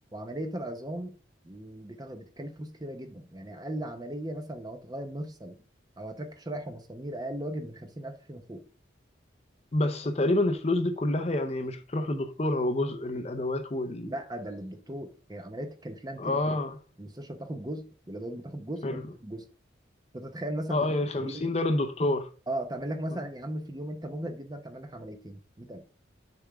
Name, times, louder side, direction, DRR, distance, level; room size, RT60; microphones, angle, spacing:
voice 1, 0.1-1.2 1.4-5.6 6.0-8.6 14.0-16.6 17.0-19.5 20.1-20.8 21.2-21.5 22.5-25.8, right 1 dB, 20° right, 0.8 m, -37 dB
voice 2, 9.7-14.1 16.2-16.7 18.8-19.0 20.7-22.3, left 2 dB, 35° left, 0.6 m, -28 dB
6.7 x 3.5 x 4.8 m
head